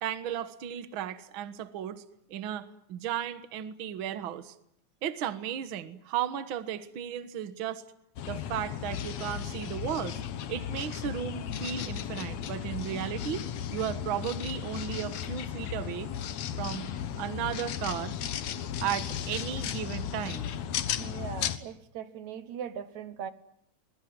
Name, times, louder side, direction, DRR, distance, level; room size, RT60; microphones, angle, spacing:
voice 1, 0.0-2.0 2.3-4.6 5.0-7.8 8.3-10.2 10.5-16.1 16.6-16.9 17.2-18.1 18.8-20.5, right 10 dB, 50° right, 11 dB, 1.8 m, -35 dB
sound 1, 8.2-21.6, left 9 dB, 65° left, 2.4 m, -35 dB
voice 2, 21.0-23.3, right 8 dB, 75° right, 12 dB, 2.6 m, -40 dB
24.5 x 22.0 x 9.5 m, 0.75 s
omnidirectional pair, 3.3 m